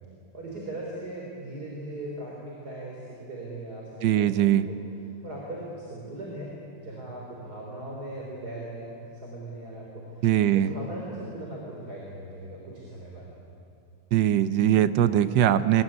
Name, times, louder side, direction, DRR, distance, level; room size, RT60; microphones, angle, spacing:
voice 1, 0.3-4.8 5.2-13.3, right 1 dB, 60° right, -2 dB, 4.2 m, -39 dB
voice 2, 4.0-4.6 10.2-10.7 14.1-15.8, right 11 dB, 85° right, 12 dB, 1.5 m, -21 dB
24.5 x 21.0 x 9.7 m, 2.6 s
omnidirectional pair, 1.9 m